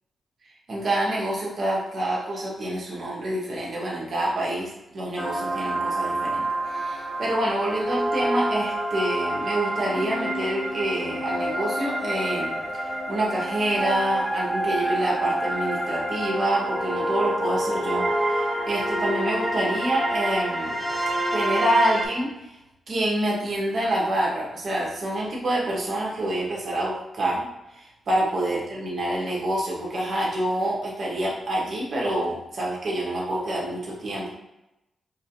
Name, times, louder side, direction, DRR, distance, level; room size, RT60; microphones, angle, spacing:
voice 1, 0.7-20.8 21.3-22.6 22.9-34.3, right 1 dB, 60° right, -4 dB, 1.3 m, -27 dB
sound 1, 5.2-22.0, right 1 dB, 10° right, 0.7 m, -27 dB
4.7 x 2.6 x 2.7 m, 0.92 s
cardioid pair, 60°, 0 cm